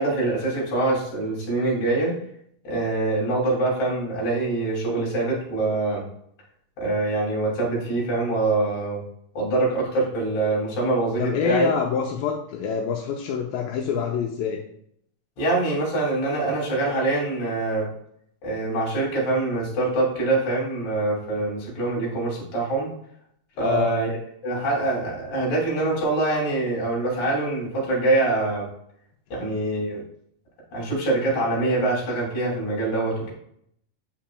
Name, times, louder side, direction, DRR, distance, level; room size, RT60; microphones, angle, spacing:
voice 1, 0.0-2.1 2.6-6.0 6.8-9.0 9.3-11.7 15.4-17.9 18.4-22.9 23.6-24.1 24.4-28.7 29.3-30.0 30.7-33.3, right 2 dB, 55° left, -3 dB, 3.9 m, -24 dB
voice 2, 11.2-14.6 23.6-24.0, left 7 dB, 85° left, 0 dB, 2.4 m, -26 dB
8.5 x 5.9 x 2.3 m, 0.69 s
omnidirectional pair, 3.9 m